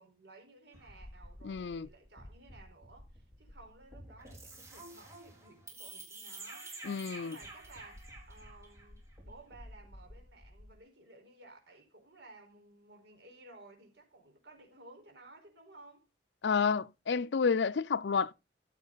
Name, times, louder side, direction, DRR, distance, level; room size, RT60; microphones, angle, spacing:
voice 1, 0.0-6.7 7.2-16.1, right 2 dB, 80° right, 4.6 m, -56 dB
sound 1, 0.7-10.8, right 1 dB, 15° right, 3.7 m, -50 dB
voice 2, 1.4-1.9 6.8-7.4 16.4-18.3, left 5 dB, 85° left, 0.5 m, -30 dB
15.0 x 7.4 x 4.0 m
head